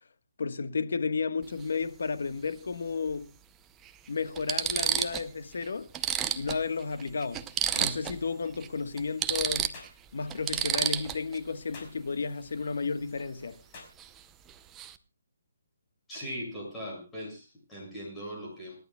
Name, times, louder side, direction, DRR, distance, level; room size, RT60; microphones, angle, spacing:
voice 1, 0.4-3.3 4.1-5.9 6.3-7.4 7.8-9.7 10.1-13.6, left 4 dB, 70° left, 1.3 m, -32 dB
sound 1, 1.4-1.6 3.1-3.2 3.9-4.0 4.4-5.3 5.6-5.7 5.9-8.2 8.5-8.7 9.0-11.4 14.0-14.2 14.5-15.0, right 10 dB, 10° right, 0.6 m, -31 dB
sound 2, 7.7-8.0 9.7-10.0 11.7-12.0 13.7-14.0, left 3 dB, 25° left, 4.9 m, -47 dB
voice 2, 16.1-18.8, equal, 10° left, 6.9 m, -39 dB
28.0 x 11.0 x 2.3 m
hypercardioid pair, 165°, 0 cm